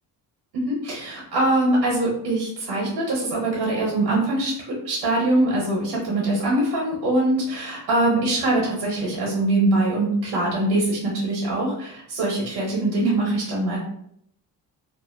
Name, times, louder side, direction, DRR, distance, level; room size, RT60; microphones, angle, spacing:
voice 1, 0.5-4.5 4.8-13.8, right 2 dB, 80° right, -4 dB, 1.0 m, -23 dB
2.6 x 2.1 x 2.6 m, 0.72 s
cardioid pair, 95°, 39 cm